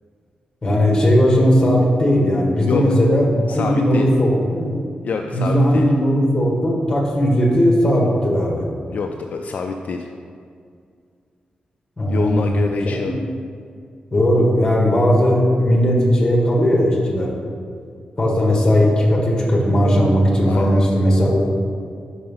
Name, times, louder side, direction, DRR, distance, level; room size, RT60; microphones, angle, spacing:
voice 1, 0.6-4.7 5.3-8.6 12.0-13.1 14.1-17.3 18.2-21.5, equal, 25° left, -2 dB, 1.5 m, -17 dB
voice 2, 3.5-4.1 5.0-5.9 8.9-10.1 12.1-13.1 20.4-20.9, left 5 dB, 60° left, 3 dB, 0.3 m, -26 dB
5.4 x 4.8 x 5.4 m, 2.2 s
wide cardioid pair, 120°, 3 cm